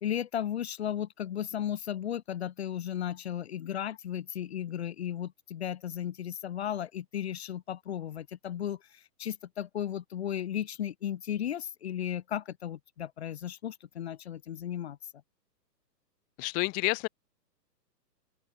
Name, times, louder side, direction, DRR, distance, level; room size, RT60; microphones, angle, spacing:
voice 1, 0.0-8.8 9.2-15.0, left 10 dB, 40° left, 2.9 m, -35 dB
voice 2, 16.4-17.1, left 30 dB, 15° left, 3.2 m, -29 dB
open air
hypercardioid pair, 175°, 50 cm